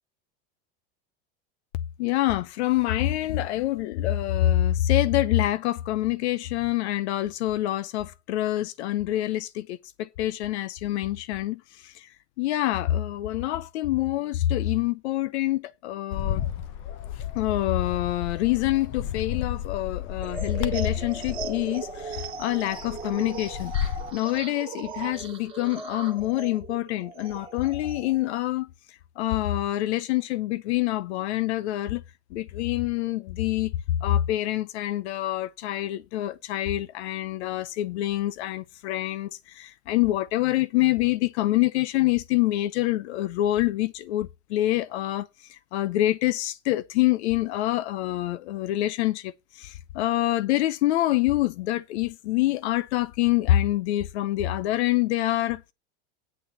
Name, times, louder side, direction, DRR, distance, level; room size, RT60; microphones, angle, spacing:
voice 1, 2.0-12.1 12.4-16.4 17.3-23.7 24.1-28.7 29.2-32.0 32.3-49.3 49.6-55.6, left 15 dB, 80° left, 0.7 m, -26 dB
Bird, 16.1-24.1, left 10 dB, 35° left, 0.8 m, -32 dB
sound 1, 20.2-28.3, right 4 dB, 15° right, 2.1 m, -38 dB
8.5 x 6.4 x 7.1 m
supercardioid pair, 160°, 33 cm